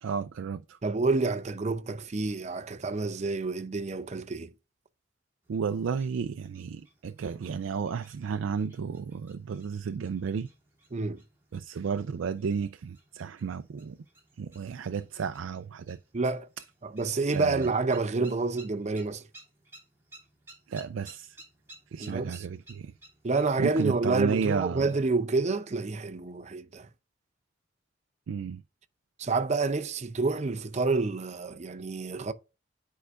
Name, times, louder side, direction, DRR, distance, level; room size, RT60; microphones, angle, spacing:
voice 1, 0.0-0.8 5.5-10.5 11.5-14.0 14.4-16.0 17.3-17.7 20.7-21.4 21.9-22.9 23.6-24.9 28.3-28.6, right 6 dB, 90° right, 0.4 m, -32 dB
voice 2, 0.8-4.5 10.9-11.2 16.1-16.5 16.8-19.2 22.0-22.4 23.2-26.9 29.2-32.3, right 3 dB, 35° right, 0.5 m, -28 dB
sound 1, 5.4-24.9, right 2 dB, 10° right, 2.7 m, -58 dB
10.5 x 4.7 x 2.5 m
head